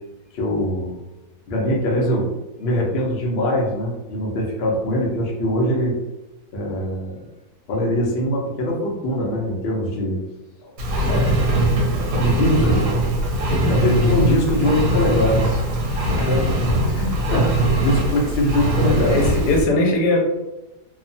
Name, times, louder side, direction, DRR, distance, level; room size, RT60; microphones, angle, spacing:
voice 1, 0.3-1.0 1.5-2.3 2.6-5.9 6.5-7.2 7.7-10.2 10.6-10.7 11.1-11.4 12.2-13.0 13.7-15.6 16.9-17.5 17.8-19.2, equal, 55° left, -2 dB, 0.7 m, -22 dB
Engine, 10.8-19.6, equal, 75° right, 1.2 m, -21 dB
voice 2, 16.1-16.6 19.1-20.2, left 1 dB, 85° left, 0 dB, 1.2 m, -20 dB
2.9 x 2.1 x 2.6 m, 1.0 s
omnidirectional pair, 1.7 m